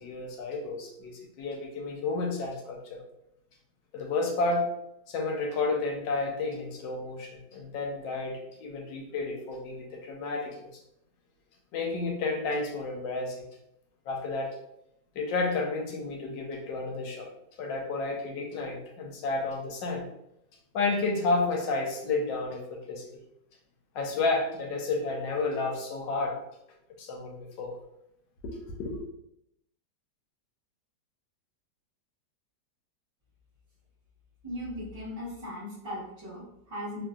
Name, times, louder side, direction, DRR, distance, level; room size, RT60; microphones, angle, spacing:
voice 1, 0.0-3.0 3.9-4.7 5.1-10.7 11.7-13.4 14.1-14.5 15.1-17.3 17.6-20.1 20.7-23.1 23.9-26.4 27.0-27.8 28.8-29.0, left 3 dB, 85° left, 1 dB, 1.3 m, -31 dB
voice 2, 34.4-37.0, left 1 dB, 25° right, -11 dB, 0.6 m, -38 dB
3.1 x 2.5 x 2.3 m, 0.79 s
omnidirectional pair, 1.9 m